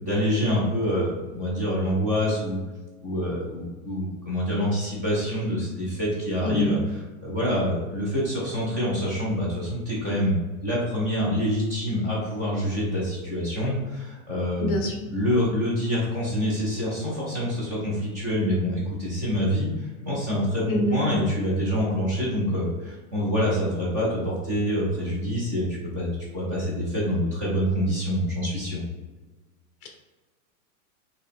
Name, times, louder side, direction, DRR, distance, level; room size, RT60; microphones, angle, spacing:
voice 1, 0.0-2.6 3.0-6.8 7.2-10.4 10.6-14.8 15.1-25.7 25.9-28.8, equal, 15° right, -7 dB, 0.4 m, -26 dB
voice 2, 6.4-6.8 14.6-15.1 20.7-21.0 29.8-29.9, left 1 dB, 40° left, 2 dB, 0.8 m, -26 dB
4.5 x 2.9 x 3.4 m, 1.2 s
supercardioid pair, 180°, 43 cm